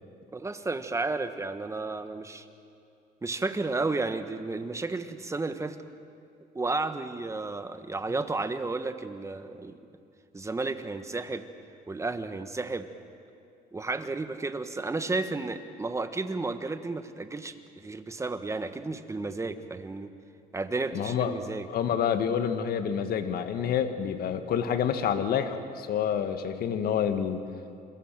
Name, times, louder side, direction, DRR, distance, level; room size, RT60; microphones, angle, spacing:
voice 1, 0.3-2.5 3.2-5.8 6.5-9.8 10.3-11.4 11.9-12.9 13.7-20.1 20.5-21.7, right 3 dB, 15° right, 9 dB, 1.5 m, -32 dB
voice 2, 20.9-21.4 21.7-27.5, left 8 dB, 65° left, 9 dB, 1.8 m, -28 dB
28.0 x 23.0 x 7.6 m, 2.5 s
cardioid pair, 110°, 17 cm